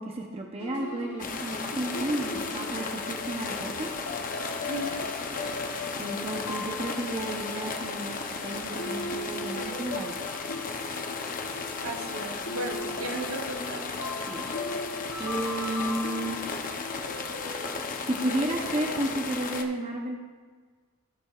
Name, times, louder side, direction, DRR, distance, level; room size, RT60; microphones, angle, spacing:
voice 1, 0.0-3.9 6.0-8.2 8.4-10.3 14.3-14.4 15.2-16.4 18.1-20.2, right 1 dB, 25° right, 0 dB, 0.8 m, -32 dB
sound 1, 0.6-19.3, left 3 dB, 70° left, 1.0 m, -39 dB
sound 2, 1.2-19.6, left 4 dB, 40° left, 0.7 m, -35 dB
voice 2, 4.7-5.1 11.8-13.9, right 1 dB, 65° right, 2 dB, 1.2 m, -35 dB
17.0 x 7.2 x 2.5 m, 1.5 s
head